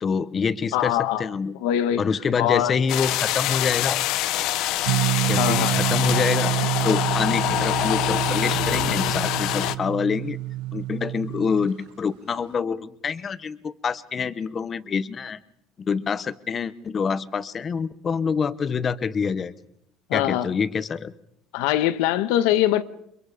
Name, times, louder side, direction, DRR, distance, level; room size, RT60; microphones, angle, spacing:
voice 1, 0.0-1.5 2.0-4.0 5.3-6.5 6.8-10.4 10.7-15.4 15.8-19.5 20.1-21.1, left 6 dB, 20° left, 0.9 m, -26 dB
voice 2, 0.7-1.3 1.6-2.0 2.4-2.8 5.4-5.8 20.1-20.5 21.5-22.8, left 12 dB, 80° left, 1.4 m, -22 dB
sound 1, 2.9-9.7, left 14 dB, 55° left, 1.0 m, -25 dB
sound 2, 4.8-11.7, right 17 dB, 90° right, 1.0 m, -27 dB
29.0 x 25.0 x 5.1 m
cardioid pair, 175°, 0 cm